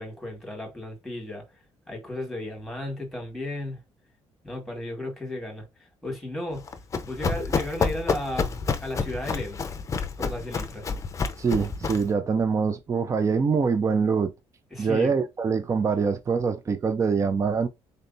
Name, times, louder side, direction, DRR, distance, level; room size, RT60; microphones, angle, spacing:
voice 1, 0.0-1.4 1.9-3.8 4.4-5.7 6.0-6.6 7.0-9.7 10.2-10.9 14.7-15.1, left 1 dB, ahead, 1.9 m, -34 dB
Run, 6.6-12.1, left 5 dB, 30° left, 0.6 m, -29 dB
voice 2, 11.4-14.3 14.8-17.7, right 5 dB, 30° right, 0.5 m, -24 dB
4.0 x 3.3 x 2.7 m
cardioid pair, 145°, 11 cm